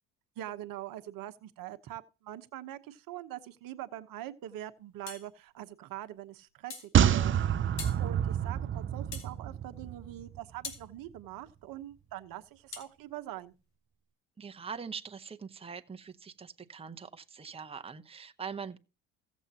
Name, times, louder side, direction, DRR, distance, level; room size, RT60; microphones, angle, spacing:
voice 1, 0.4-7.3 8.0-13.5, right 13 dB, 65° right, 1.1 m, -43 dB
sound 1, 5.1-5.3 6.7-6.9 7.8-8.0 9.1-9.3 10.6-10.9 12.7-12.9, left 5 dB, 70° left, 2.7 m, -42 dB
sound 2, 6.9-10.4 10.7-10.8, right 9 dB, 35° right, 0.6 m, -28 dB
voice 2, 14.4-18.8, right 6 dB, 15° right, 1.0 m, -43 dB
16.0 x 7.3 x 2.9 m
supercardioid pair, 75°, 37 cm